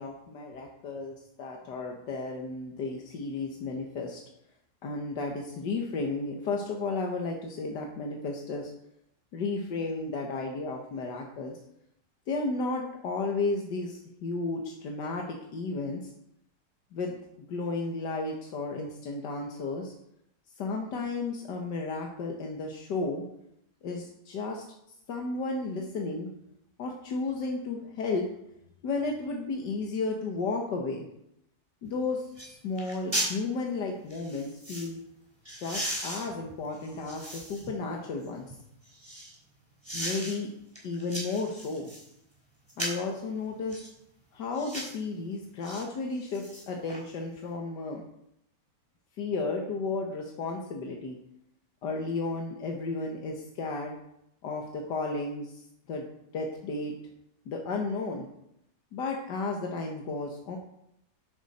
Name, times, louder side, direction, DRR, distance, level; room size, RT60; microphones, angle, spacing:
voice 1, 0.0-4.2 4.8-8.7 9.3-11.6 12.3-16.1 16.9-19.9 20.6-23.2 23.8-24.6 25.1-26.3 26.8-28.3 28.8-31.1 31.8-35.0 35.6-38.6 39.9-40.5 40.8-41.9 42.8-43.8 44.3-48.0 49.2-51.2 51.8-54.0 54.4-56.1 56.3-56.9 57.5-58.3 58.9-60.6, left 3 dB, 90° left, 1 dB, 1.9 m, -33 dB
sound 1, 31.8-31.9 32.4-32.5 32.8-33.4 34.1-34.9 35.4-37.7 38.2-39.3 39.8-40.4 40.7-42.1 42.7-43.1 43.7-43.9 44.5-45.0 45.6-45.8 46.2-47.0 47.4-47.5, right 1 dB, 15° right, 3.7 m, -36 dB
11.0 x 10.5 x 4.3 m, 0.78 s
omnidirectional pair, 1.8 m